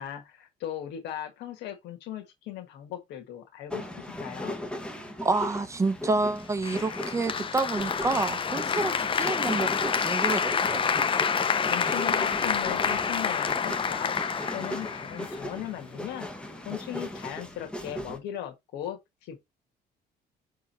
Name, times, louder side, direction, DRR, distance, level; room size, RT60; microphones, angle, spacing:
voice 1, 0.0-4.6 11.6-16.3 16.6-19.4, left 11 dB, 85° left, 1.6 m, -38 dB
sound 1, 3.7-18.2, left 1 dB, 5° left, 1.4 m, -38 dB
voice 2, 5.2-10.8, right 3 dB, 15° right, 0.8 m, -29 dB
Applause, 6.6-15.6, left 6 dB, 30° left, 0.7 m, -28 dB
6.2 x 3.7 x 4.3 m
cardioid pair, 110°, 17 cm